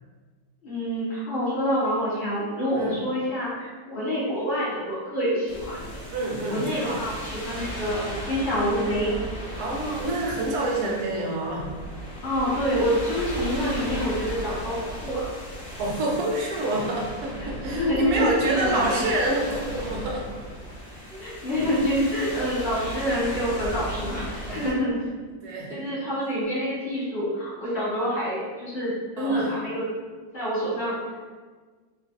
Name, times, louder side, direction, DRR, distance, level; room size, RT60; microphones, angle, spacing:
voice 1, 0.6-6.0 6.5-9.1 12.2-14.8 15.0-15.3 17.6-19.1 21.1-25.0 25.7-29.9 30.3-31.0, equal, 30° left, -17 dB, 1.3 m, -27 dB
sound 1, 5.5-24.7, right 1 dB, 70° left, 1.7 m, -36 dB
voice 2, 6.1-7.0 9.6-11.7 15.8-20.2 22.2-22.5 24.5-24.6 25.3-26.1 29.2-29.5, right 2 dB, 70° right, -2 dB, 1.1 m, -28 dB
3.5 x 2.3 x 2.8 m, 1.4 s
omnidirectional pair, 1.9 m